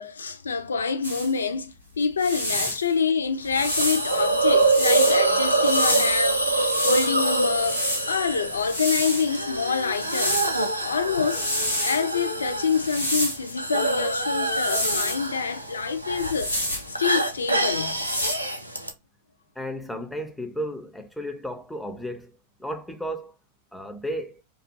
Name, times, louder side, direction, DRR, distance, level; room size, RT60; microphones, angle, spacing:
voice 1, 0.0-10.5 10.8-11.5 11.8-16.5 16.9-18.1, left 5 dB, 70° left, 0.3 m, -27 dB
sound 1, 1.0-1.3 2.0-2.8 3.5-5.2 5.6-7.1 7.5-9.4 10.0-10.7 11.0-12.0 12.7-13.5 14.4-15.3 16.1-16.9 17.7-18.4, equal, 90° left, 0.9 m, -29 dB
Hiss, 3.5-18.9, right 2 dB, 90° right, 0.3 m, -25 dB
voice 2, 19.6-22.3 22.6-23.3 23.7-24.4, equal, 5° left, 0.4 m, -33 dB
2.3 x 2.3 x 2.5 m
figure-of-eight pair, 90°, 0 cm